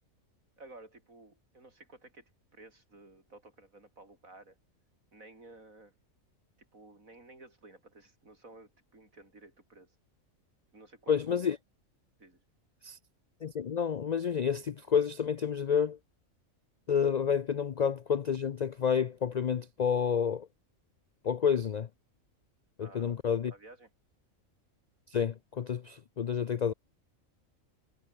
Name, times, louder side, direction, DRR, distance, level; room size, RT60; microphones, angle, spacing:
voice 1, 0.6-4.6 5.1-5.9 6.7-10.0 10.7-11.5 12.2-12.4 22.8-23.2 23.5-23.9, right 2 dB, 80° right, 5.5 m, -54 dB
voice 2, 11.1-11.6 12.8-13.0 13.4-16.0 16.9-20.5 21.2-21.9 22.8-23.5 25.1-26.7, left 7 dB, 70° left, 0.4 m, -29 dB
omnidirectional pair, 1.4 m